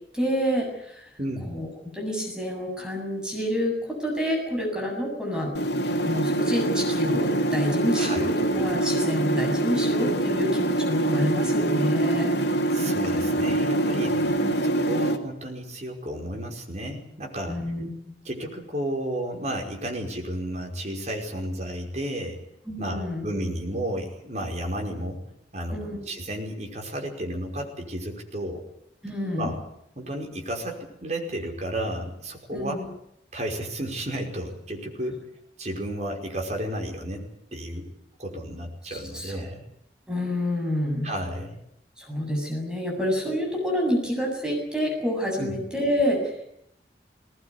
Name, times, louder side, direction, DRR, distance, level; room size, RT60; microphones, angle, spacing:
voice 1, 0.1-1.1 1.4-5.5 6.0-12.4 14.2-14.6 17.5-18.2 22.7-23.3 25.7-26.1 29.0-29.6 32.5-32.9 38.9-39.5 40.1-41.1 42.0-46.5, equal, 5° right, 0 dB, 7.6 m, -28 dB
voice 2, 1.2-1.5 8.0-8.3 12.7-14.2 14.6-17.6 18.2-22.4 22.8-25.2 25.5-28.6 29.4-29.6 30.0-32.8 33.3-35.2 35.6-37.9 38.2-39.6 41.0-41.6 45.4-45.6, right 1 dB, 40° right, 1 dB, 5.5 m, -32 dB
sound 1, 5.5-15.2, right 1 dB, 75° left, 2.6 m, -24 dB
20.5 x 20.0 x 9.8 m, 0.75 s
head